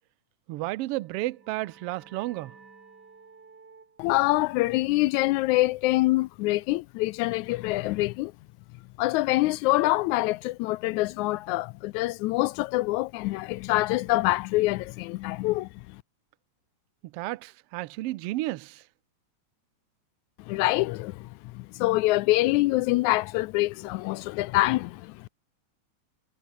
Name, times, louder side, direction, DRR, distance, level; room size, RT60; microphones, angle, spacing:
voice 1, 0.5-2.5 17.1-18.8, right 18 dB, 85° right, 1.3 m, -32 dB
sound 1, 0.8-6.2, right 4 dB, 35° right, 3.3 m, -56 dB
voice 2, 4.0-8.3 9.0-16.0 20.4-25.3, left 19 dB, 80° left, 1.9 m, -25 dB
omnidirectional pair, 3.4 m